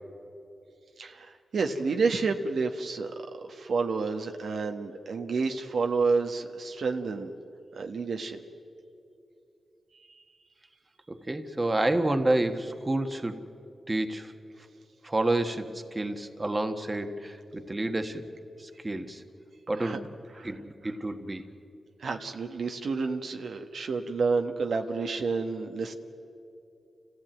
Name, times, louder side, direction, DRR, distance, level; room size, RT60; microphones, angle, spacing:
voice 1, 1.0-3.1 3.4-7.3 7.7-8.4 19.7-20.0 20.4-20.5 22.0-25.9, right 4 dB, 75° right, 4 dB, 1.3 m, -29 dB
voice 2, 11.1-13.4 13.9-14.3 15.0-18.2 18.6-19.2 19.7-20.1 20.4-21.4, right 2 dB, 25° right, 7 dB, 1.5 m, -29 dB
28.5 x 15.0 x 9.1 m, 2.7 s
cardioid pair, 65°, 0 cm